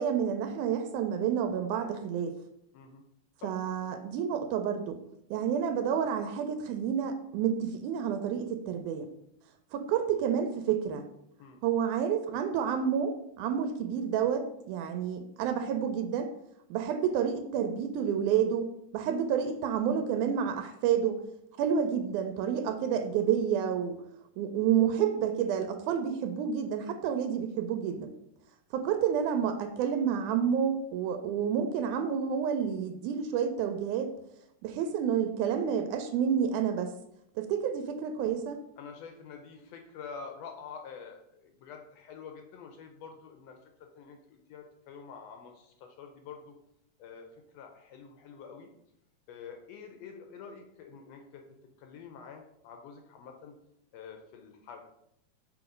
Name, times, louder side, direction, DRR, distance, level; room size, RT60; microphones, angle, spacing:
voice 1, 0.0-2.3 3.4-5.0 5.3-9.1 9.7-11.1 11.6-16.3 16.7-21.2 21.6-24.0 24.4-28.1 28.7-34.1 34.6-36.9 37.4-38.6, right 8 dB, 90° right, 7 dB, 2.0 m, -29 dB
voice 2, 2.7-3.0 3.4-3.6 11.4-11.6 38.8-46.5 47.0-48.7 49.3-51.4 51.8-53.6 53.9-54.9, left 6 dB, 80° left, 4 dB, 1.5 m, -47 dB
6.3 x 3.0 x 5.0 m, 0.78 s
omnidirectional pair, 3.5 m